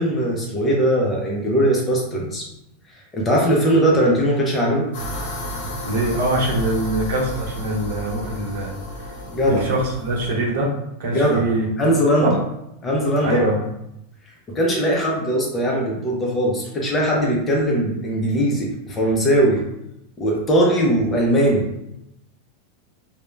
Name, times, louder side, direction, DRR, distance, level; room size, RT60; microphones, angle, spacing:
voice 1, 0.0-2.4 3.1-4.9 9.3-9.6 11.1-11.4 11.8-12.3 12.8-13.5 14.5-19.6 20.2-21.7, equal, 15° left, -2 dB, 0.5 m, -20 dB
sound 1, 4.9-10.3, equal, 55° left, 0.9 m, -32 dB
voice 2, 5.8-9.2 9.5-11.7 12.2-12.4 13.2-13.7, right 1 dB, 65° right, -1 dB, 0.7 m, -23 dB
2.3 x 2.0 x 3.1 m, 0.81 s
supercardioid pair, 170°, 0 cm